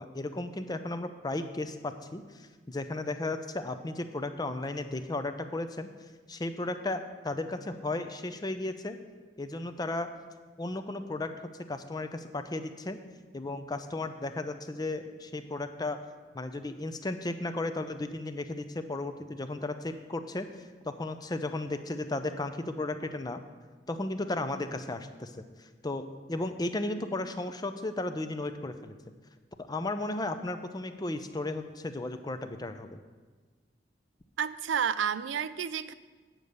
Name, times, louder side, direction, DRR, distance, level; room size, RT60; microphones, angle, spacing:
voice 1, 0.0-5.9 6.3-9.0 9.4-10.1 10.6-11.3 11.7-13.0 13.3-16.0 16.3-20.5 20.8-23.4 23.9-28.9 29.6-33.0, left 2 dB, 20° left, 9 dB, 0.5 m, -35 dB
voice 2, 34.4-35.9, right 7 dB, 90° right, 15 dB, 0.4 m, -30 dB
9.0 x 6.5 x 6.8 m, 1.4 s
head